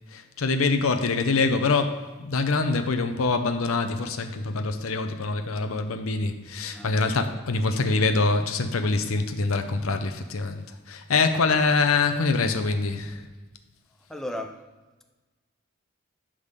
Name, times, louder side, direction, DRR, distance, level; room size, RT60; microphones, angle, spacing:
voice 1, 0.1-13.3, left 3 dB, 75° left, 0.7 m, -25 dB
voice 2, 14.1-14.7, left 1 dB, ahead, 0.4 m, -35 dB
9.9 x 3.6 x 6.6 m
head